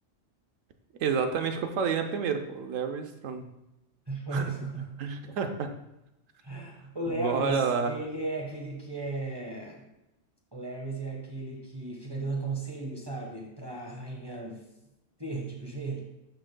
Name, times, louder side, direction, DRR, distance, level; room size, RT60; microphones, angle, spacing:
voice 1, 1.0-3.4 4.3-4.5 5.0-5.7 7.2-7.9, right 6 dB, 85° right, 6 dB, 1.2 m, -29 dB
voice 2, 4.1-5.0 6.4-9.8 10.5-14.6 15.2-16.0, right 2 dB, 20° right, -2 dB, 1.3 m, -35 dB
12.0 x 6.2 x 2.2 m, 0.92 s
omnidirectional pair, 1.3 m